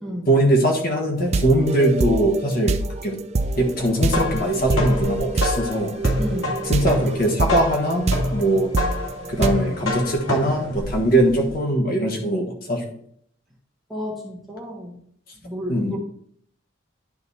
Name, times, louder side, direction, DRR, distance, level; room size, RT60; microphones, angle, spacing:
voice 1, 0.3-2.8 3.0-3.2 3.6-5.9 6.6-8.7 9.3-12.8 15.7-16.0, right 1 dB, 45° left, 1 dB, 1.4 m, -21 dB
sound 1, 1.2-9.5, right 2 dB, 30° right, 0.4 m, -26 dB
sound 2, 3.8-11.5, left 1 dB, 80° left, 2.5 m, -27 dB
voice 2, 6.2-6.6 13.9-15.0 15.4-16.0, equal, ahead, -3 dB, 1.4 m, -32 dB
11.0 x 3.9 x 4.2 m, 0.64 s
head